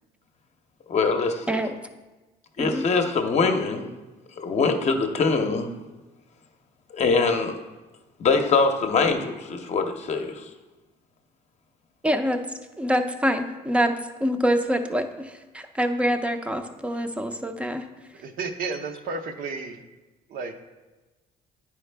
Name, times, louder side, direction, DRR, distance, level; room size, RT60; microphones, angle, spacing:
voice 1, 0.9-1.6 2.6-3.9 4.4-5.7 6.9-7.6 8.2-10.4, left 4 dB, 40° left, 0.7 m, -23 dB
voice 2, 12.0-12.4 12.8-13.9 14.2-17.9, equal, 5° right, 0.5 m, -25 dB
voice 3, 18.2-19.8 20.3-20.5, right 4 dB, 60° right, 0.7 m, -32 dB
9.5 x 4.8 x 3.3 m
cardioid pair, 110°, 17 cm